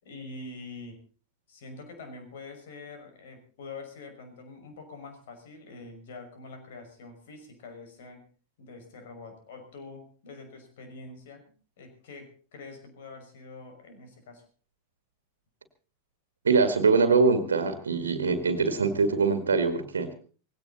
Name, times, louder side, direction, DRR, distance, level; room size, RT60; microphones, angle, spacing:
voice 1, 0.0-1.0 1.5-8.3 8.6-11.4 11.8-14.4, left 3 dB, 55° left, 6 dB, 5.8 m, -45 dB
voice 2, 16.4-20.1, right 4 dB, 70° right, 9 dB, 1.9 m, -23 dB
19.0 x 17.0 x 4.1 m, 0.39 s
figure-of-eight pair, 90°, 0 cm